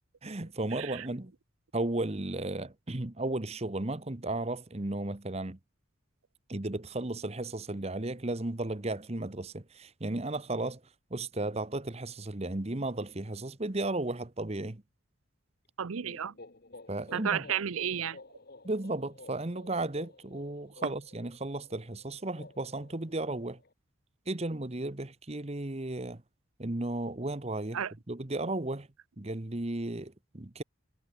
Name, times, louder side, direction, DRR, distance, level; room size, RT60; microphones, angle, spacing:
voice 1, 0.2-1.3 1.7-5.6 6.5-10.8 11.1-14.8 16.9-17.4 18.6-23.6 24.3-26.2 26.6-27.8 28.1-28.9 29.2-30.6, right 2 dB, 30° right, 1.1 m, -34 dB
voice 2, 15.8-16.3 17.1-18.2 27.7-27.9, right 8 dB, 90° right, 0.6 m, -32 dB
sound 1, 16.0-23.7, left 2 dB, 50° left, 1.5 m, -53 dB
head